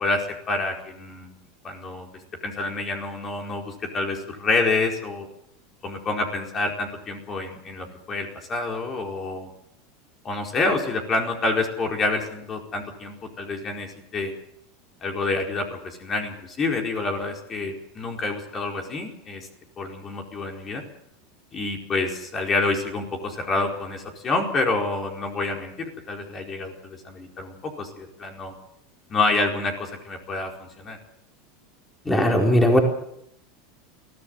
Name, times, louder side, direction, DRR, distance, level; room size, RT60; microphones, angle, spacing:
voice 1, 0.0-1.4 1.6-2.1 2.4-5.3 5.8-9.5 10.2-14.3 15.0-19.5 19.8-20.8 21.5-28.5 29.1-31.0, left 3 dB, 30° left, 2 dB, 4.6 m, -28 dB
voice 2, 32.1-32.8, equal, 10° left, 1 dB, 4.5 m, -18 dB
22.5 x 15.5 x 8.0 m, 0.77 s
supercardioid pair, 110°, 0 cm